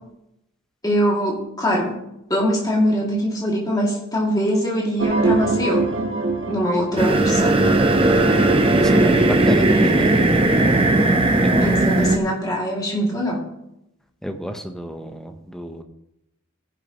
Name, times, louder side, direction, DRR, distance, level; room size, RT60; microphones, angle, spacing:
voice 1, 0.8-2.0 2.3-5.9 6.5-7.6 11.6-13.4, equal, 20° left, -2 dB, 2.4 m, -22 dB
sound 1, 5.0-7.8, right 3 dB, 55° right, 1.4 m, -23 dB
sound 2, 7.0-12.2, right 2 dB, 25° right, 0.8 m, -17 dB
voice 2, 8.6-10.2 11.4-11.8 14.2-15.8, equal, ahead, 5 dB, 0.8 m, -29 dB
15.5 x 10.5 x 3.0 m, 0.84 s
head